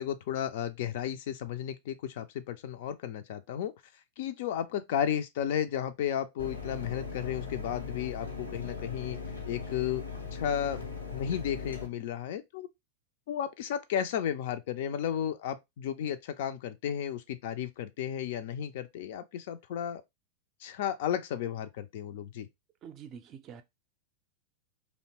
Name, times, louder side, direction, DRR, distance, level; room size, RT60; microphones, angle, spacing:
voice 1, 0.0-3.7 4.2-9.2 9.5-10.0 10.3-10.8 11.1-12.7 13.3-20.0 20.6-22.5, left 9 dB, 55° left, 0.3 m, -33 dB
Mechanisms, 6.4-11.9, left 5 dB, 80° left, 0.7 m, -39 dB
voice 2, 22.8-23.6, right 7 dB, 35° right, 0.4 m, -46 dB
2.7 x 2.1 x 2.9 m
figure-of-eight pair, 90°, 0 cm